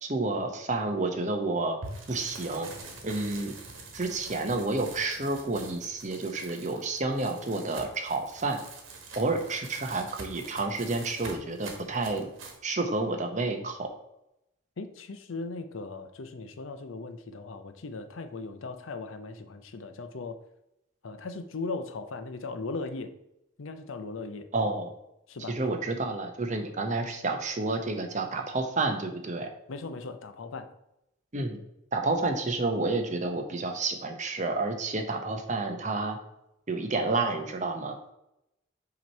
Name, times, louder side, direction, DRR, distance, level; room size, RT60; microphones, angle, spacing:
voice 1, 0.0-1.8 2.1-2.7 3.0-3.5 3.9-8.6 9.1-12.3 12.6-13.9 24.5-24.9 25.5-29.5 31.3-31.6 31.9-36.2 36.7-38.0, right 3 dB, 35° right, 5 dB, 0.7 m, -30 dB
sound 1, 1.8-12.6, right 3 dB, 75° right, 1.3 m, -45 dB
voice 2, 14.8-20.4 21.0-23.1 23.6-24.5 25.3-25.6 29.7-30.7, left 3 dB, 80° left, 9 dB, 0.6 m, -38 dB
5.9 x 3.0 x 5.4 m, 0.84 s
head